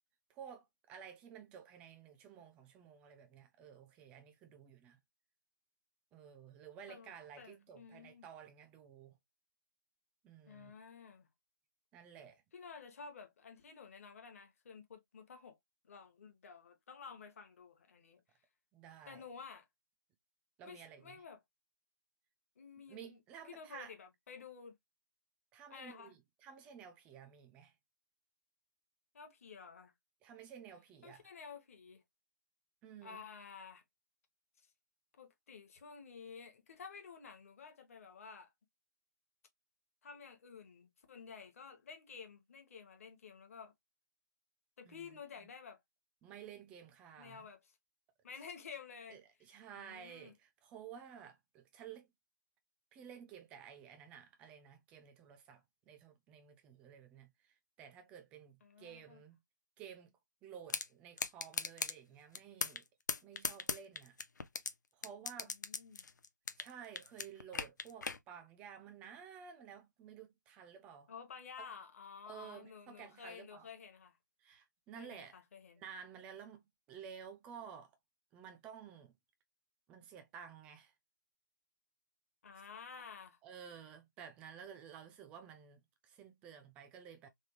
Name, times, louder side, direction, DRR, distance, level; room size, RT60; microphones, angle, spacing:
voice 1, 0.3-5.0 6.1-9.2 10.2-10.7 11.9-12.4 18.7-19.2 20.6-21.2 22.9-23.9 25.5-27.7 30.2-31.3 32.8-33.3 44.8-45.5 46.2-47.5 49.1-52.1 52.9-59.4 59.8-60.1 60.4-62.8 63.2-64.2 64.9-65.6 66.6-71.1 71.6-71.7 72.3-73.7 74.4-75.4 75.8-77.9 78.3-79.2 79.9-80.9 83.0-83.1 83.4-87.3, right 8 dB, 10° right, 0.4 m, -53 dB
voice 2, 6.9-8.3 10.5-11.3 12.5-15.6 15.8-18.2 19.0-19.7 20.6-21.4 22.6-23.2 23.4-24.8 25.7-26.1 29.1-29.9 31.0-32.0 33.0-33.8 35.2-38.5 40.0-43.7 44.8-45.8 47.2-47.7 48.2-49.2 49.7-50.3 58.6-59.2 65.4-66.1 71.1-74.2 75.0-75.8 82.4-83.4, left 6 dB, 45° left, 1.0 m, -52 dB
sound 1, 60.7-60.9 61.2-61.9 62.3-62.8 63.1-64.7 65.0-66.7 67.0-68.2, left 5 dB, 65° left, 0.6 m, -37 dB
3.3 x 2.2 x 2.9 m
figure-of-eight pair, 150°, 10 cm